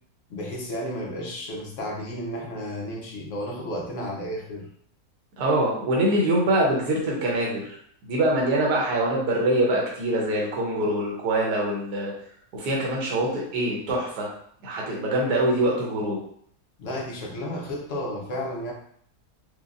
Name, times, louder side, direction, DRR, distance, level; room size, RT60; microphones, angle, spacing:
voice 1, 0.3-4.7 16.8-18.7, equal, 60° left, -2 dB, 1.0 m, -32 dB
voice 2, 5.4-7.8 8.0-12.1 12.5-14.3 14.6-16.2, right 1 dB, 85° right, -3 dB, 1.4 m, -24 dB
4.9 x 2.3 x 2.5 m, 0.63 s
omnidirectional pair, 1.7 m